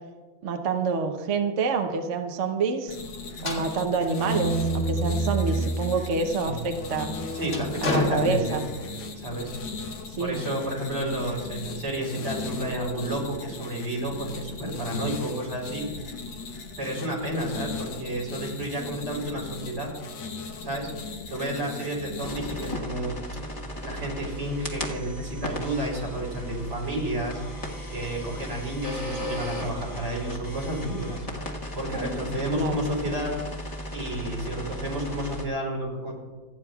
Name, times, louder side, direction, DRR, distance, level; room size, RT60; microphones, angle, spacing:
voice 1, 0.4-3.0 3.4-7.1 7.8-8.6 10.2-10.4 32.5-32.8, right 4 dB, 50° right, 4 dB, 1.0 m, -27 dB
sound 1, 2.9-22.7, left 4 dB, 90° left, 1.9 m, -38 dB
sound 2, 3.4-5.8 6.2-9.1, right 1 dB, 45° left, 2.2 m, -29 dB
voice 2, 7.3-8.6 9.1-9.5 10.2-15.9 16.8-19.9 20.6-20.9 21.3-23.2 23.8-27.4 27.9-31.2 31.7-33.3 33.9-36.1, right 1 dB, 85° right, -3 dB, 4.7 m, -31 dB
sound 3, 22.2-35.5, equal, 20° left, 1.2 m, -36 dB
28.0 x 9.5 x 2.4 m, 1.4 s
omnidirectional pair, 2.1 m